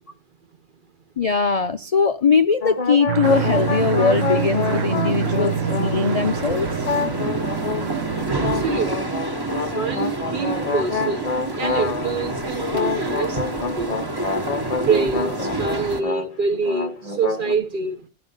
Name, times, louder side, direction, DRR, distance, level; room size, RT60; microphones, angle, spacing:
voice 1, 1.2-6.7, left 5 dB, 50° left, 0.4 m, -20 dB
sound 1, 2.6-6.4 6.8-7.9 8.4-12.3 12.7-16.3 16.5-17.5, left 4 dB, 35° left, 0.8 m, -27 dB
sound 2, 3.1-8.4, right 10 dB, 70° right, 1.2 m, -27 dB
sound 3, 3.2-16.0, right 2 dB, 20° right, 1.3 m, -28 dB
voice 2, 8.2-9.1 9.6-13.9 14.8-18.0, right 4 dB, 45° right, 0.8 m, -26 dB
12.5 x 5.8 x 5.5 m
omnidirectional pair, 1.4 m